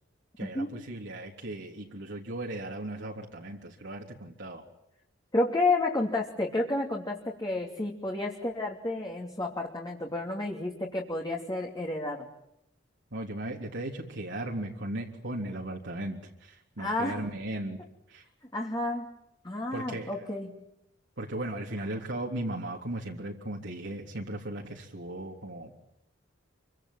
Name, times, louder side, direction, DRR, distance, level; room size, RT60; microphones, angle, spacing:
voice 1, 0.4-4.6 13.1-17.8 18.1-18.2 19.7-20.3 21.2-25.7, right 1 dB, 65° right, -1 dB, 3.5 m, -37 dB
voice 2, 5.3-12.3 16.8-17.2 18.5-19.1 19.4-20.6, left 2 dB, 20° left, 0 dB, 3.0 m, -31 dB
28.0 x 25.0 x 7.6 m, 0.81 s
head